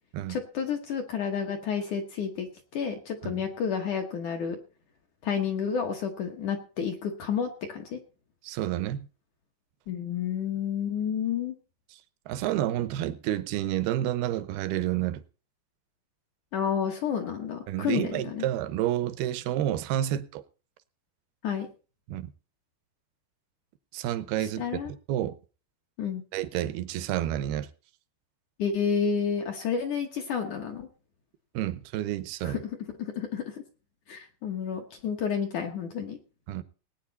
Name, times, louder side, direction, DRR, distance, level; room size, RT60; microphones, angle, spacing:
voice 1, 0.3-2.5 2.7-4.6 5.2-8.0 9.9-11.5 16.5-18.5 21.4-21.7 24.6-24.9 26.0-26.2 28.6-30.9 32.4-32.6 33.0-33.6 34.1-36.2, left 7 dB, 60° left, 2.1 m, -30 dB
voice 2, 8.4-9.1 12.3-15.2 17.7-20.4 22.1-22.3 23.9-24.8 25.1-25.4 26.3-27.7 31.5-32.6 36.5-36.6, right 12 dB, 75° right, 2.6 m, -29 dB
20.0 x 9.2 x 4.1 m
omnidirectional pair, 5.0 m